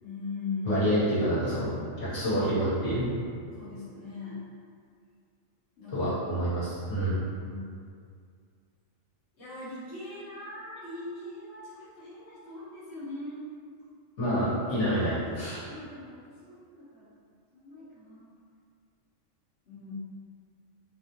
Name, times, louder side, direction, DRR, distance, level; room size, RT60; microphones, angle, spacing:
voice 1, 0.0-0.8 3.5-4.4 5.8-6.2 7.4-7.6 9.4-13.5 15.7-17.2 17.5-18.3 19.7-19.9, left 3 dB, 50° left, -12 dB, 1.4 m, -40 dB
voice 2, 0.6-1.7 2.0-3.1 5.9-7.3 14.2-15.6, equal, 65° left, -11 dB, 1.6 m, -27 dB
3.8 x 3.1 x 2.7 m, 2.2 s
omnidirectional pair, 1.3 m